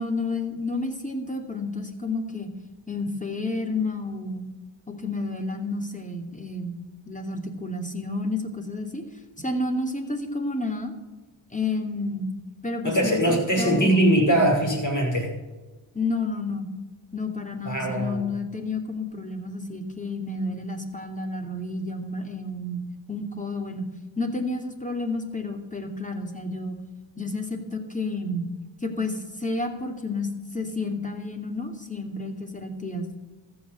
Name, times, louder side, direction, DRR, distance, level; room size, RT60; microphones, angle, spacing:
voice 1, 0.0-2.5 2.9-4.5 4.9-6.8 7.1-9.0 9.4-10.9 11.5-12.3 12.6-14.1 15.9-16.7 17.1-22.8 23.1-23.9 24.2-26.8 27.2-28.5 28.8-33.2, left 2 dB, 15° left, 3 dB, 2.8 m, -30 dB
voice 2, 12.8-15.3 17.6-18.2, right 1 dB, 40° left, -1 dB, 5.6 m, -21 dB
14.0 x 6.4 x 9.0 m, 1.2 s
cardioid pair, 40°, 48 cm